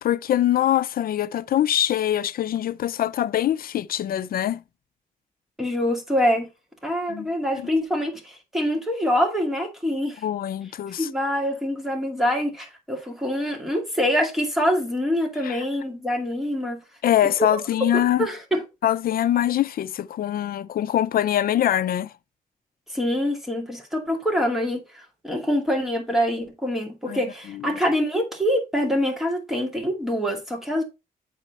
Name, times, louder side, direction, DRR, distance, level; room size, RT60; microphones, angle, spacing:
voice 1, 0.0-4.6 7.1-7.3 10.2-11.1 15.4-15.6 17.0-18.3 18.8-22.1 27.1-27.2 27.5-27.8, left 11 dB, 80° left, 0.4 m, -23 dB
voice 2, 5.6-6.5 6.8-10.2 11.0-16.8 17.4-17.5 18.2-18.6 22.9-30.8, equal, ahead, 2.3 m, -25 dB
9.1 x 4.3 x 4.1 m
wide cardioid pair, 110°, 15 cm